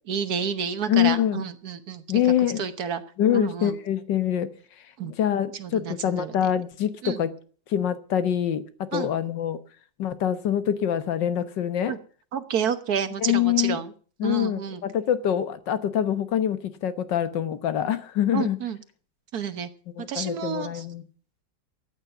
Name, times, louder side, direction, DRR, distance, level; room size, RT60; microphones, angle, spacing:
voice 1, 0.1-3.0 3.3-3.8 5.0-5.1 5.5-6.4 7.0-7.2 8.9-9.1 11.9-12.0 12.3-13.9 14.2-14.8 18.3-18.8 19.3-19.7 20.1-20.9, right 7 dB, 60° right, 11 dB, 1.6 m, -30 dB
voice 2, 0.9-1.4 2.1-2.6 3.2-4.5 5.1-7.3 7.7-8.6 8.9-9.6 10.0-11.9 13.2-13.8 14.2-18.6 20.0-21.0, left 10 dB, 75° left, 13 dB, 1.7 m, -25 dB
14.0 x 8.9 x 7.9 m, 0.42 s
omnidirectional pair, 2.0 m